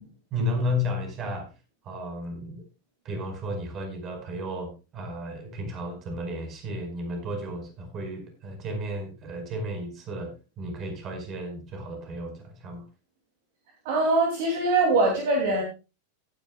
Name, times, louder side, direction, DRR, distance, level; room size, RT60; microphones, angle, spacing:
voice 1, 0.3-1.5 1.8-2.6 3.0-12.8, left 1 dB, 30° right, 4 dB, 4.8 m, -33 dB
voice 2, 13.8-15.6, right 2 dB, 50° right, 1 dB, 2.8 m, -22 dB
17.5 x 10.5 x 2.3 m, 0.30 s
figure-of-eight pair, 90°, 0 cm